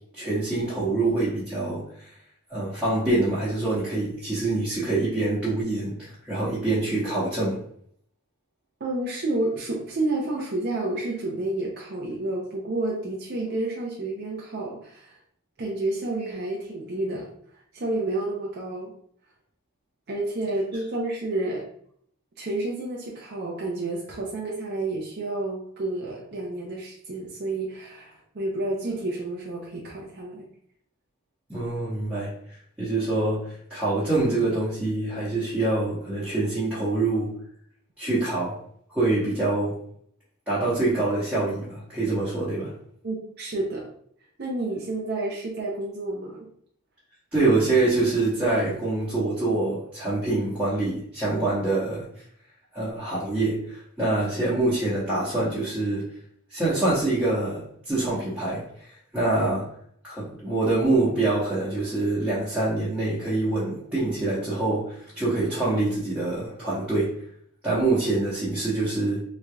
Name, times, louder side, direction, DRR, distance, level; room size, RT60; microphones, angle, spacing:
voice 1, 0.2-2.1 2.5-7.6 31.5-32.3 32.8-37.3 38.0-38.6 38.9-39.7 40.5-42.7 47.3-52.1 52.7-56.0 56.5-58.6 59.1-59.6 60.0-67.1 67.6-69.2, right 2 dB, 5° right, -11 dB, 1.0 m, -25 dB
voice 2, 8.8-15.2 15.6-17.3 17.7-18.9 20.1-21.6 22.4-30.5 43.0-43.9 44.4-46.5, right 2 dB, 50° right, -4 dB, 0.6 m, -30 dB
3.8 x 3.2 x 2.3 m, 0.64 s
head